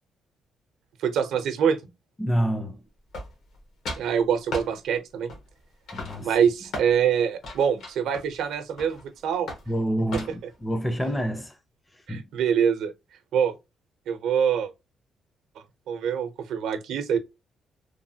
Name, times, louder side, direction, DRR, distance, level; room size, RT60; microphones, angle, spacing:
voice 1, 1.0-1.8 3.9-5.3 6.2-9.5 12.1-12.9 13.3-13.5 14.1-14.7 15.9-17.2, right 7 dB, 80° right, 0.5 m, -24 dB
voice 2, 2.2-2.8 5.9-6.3 9.7-11.5 12.1-12.2, equal, 10° left, 0.5 m, -27 dB
sound 1, 3.1-3.6 3.9-4.1 4.5-4.7 5.3-5.6 5.9-6.9 7.4-9.0 9.5-9.7 10.1-10.5, left 2 dB, 70° left, 1.0 m, -37 dB
3.1 x 2.1 x 2.7 m
cardioid pair, 90°, 0 cm